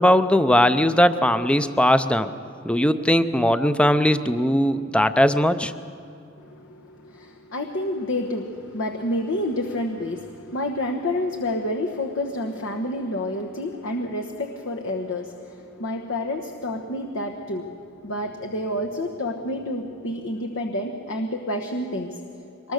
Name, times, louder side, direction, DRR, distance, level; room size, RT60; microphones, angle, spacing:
voice 1, 0.0-2.3 2.6-5.7, equal, 5° left, 12 dB, 0.6 m, -19 dB
voice 2, 6.4-22.7, left 1 dB, 70° left, 2 dB, 1.2 m, -29 dB
24.0 x 20.5 x 6.6 m, 2.8 s
head